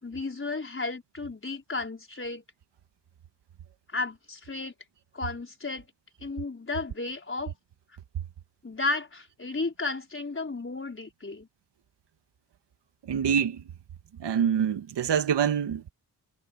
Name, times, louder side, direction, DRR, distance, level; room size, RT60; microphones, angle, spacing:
voice 1, 0.0-2.4 3.9-4.7 5.1-5.9 6.2-7.5 8.6-11.5, left 3 dB, 30° left, 4.8 m, -33 dB
voice 2, 13.1-13.6 14.2-15.9, right 8 dB, 80° right, 2.0 m, -25 dB
cardioid pair, 55°, 41 cm